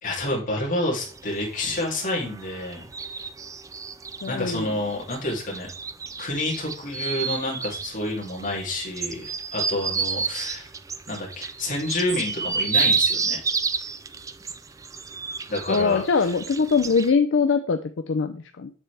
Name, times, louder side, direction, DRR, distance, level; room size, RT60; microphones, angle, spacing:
voice 1, 0.0-2.9 4.3-5.7 6.2-9.3 9.5-10.7 11.1-13.4 15.5-16.3, left 1 dB, 40° left, -3 dB, 2.8 m, -29 dB
sound 1, 1.0-17.1, right 5 dB, 15° right, 0.3 m, -30 dB
voice 2, 4.2-4.7 15.7-18.7, left 5 dB, 60° left, 8 dB, 0.5 m, -22 dB
7.3 x 6.9 x 3.4 m, 0.41 s
head